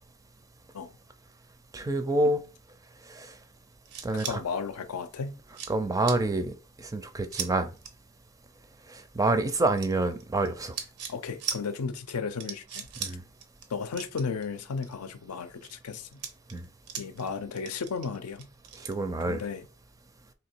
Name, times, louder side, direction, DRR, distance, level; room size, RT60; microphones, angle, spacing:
voice 1, 1.7-2.4 3.1-3.3 4.0-4.4 5.7-7.7 8.9-10.7 13.0-13.2 16.5-16.6 18.8-19.4, right 2 dB, 15° right, 0.4 m, -27 dB
sound 1, 3.9-4.4 5.0-5.1 5.5-5.7 6.1-6.2 7.3-7.5 7.8-7.9 9.8-10.5 10.7-11.1 11.4-11.6 12.1-12.2 12.4-13.1 13.4-13.7 13.9-14.9 15.4-15.7 16.1-17.3 17.5-18.9, right 7 dB, 90° right, 0.7 m, -37 dB
voice 2, 4.1-5.4 11.1-12.9 13.7-16.2 17.0-18.5 19.3-19.6, left 5 dB, 85° left, 0.5 m, -34 dB
3.2 x 2.9 x 4.4 m
head